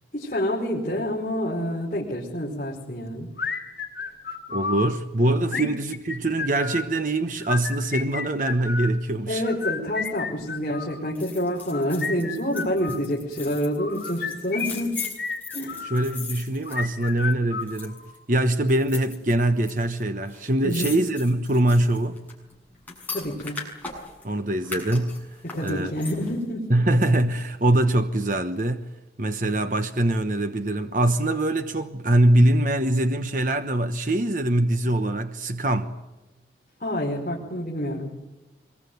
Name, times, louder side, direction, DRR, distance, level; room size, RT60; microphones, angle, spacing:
voice 1, 0.1-3.3 5.5-5.7 9.3-14.9 15.5-15.8 20.6-20.9 23.1-23.6 25.4-26.7 36.8-38.1, equal, 45° left, 4.9 m, -28 dB
sound 1, 3.4-4.9 5.5-6.9 7.4-8.9 9.4-11.0 11.6-13.0 13.8-16.1 16.6-18.1, left 5 dB, 60° left, 5.8 m, -32 dB
voice 2, 4.5-9.4 15.9-22.3 24.2-25.3 25.6-25.9 26.7-28.9 29.2-36.0, right 1 dB, 45° right, 1.2 m, -23 dB
sound 2, 11.2-17.3 17.6-18.2 18.7-19.7 20.0-20.1 20.3-24.3 24.6-26.4 26.8-26.9, left 5 dB, 10° left, 7.5 m, -38 dB
25.5 x 22.0 x 9.4 m
head